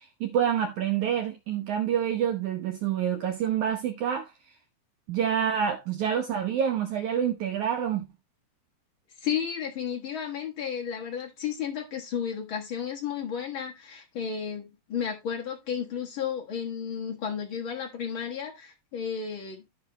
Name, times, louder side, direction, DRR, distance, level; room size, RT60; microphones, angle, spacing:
voice 1, 0.0-4.3 5.1-8.0, right 9 dB, 75° right, 1.8 m, -27 dB
voice 2, 9.2-19.6, left 8 dB, 90° left, 1.1 m, -33 dB
13.0 x 5.2 x 3.0 m
omnidirectional pair, 4.6 m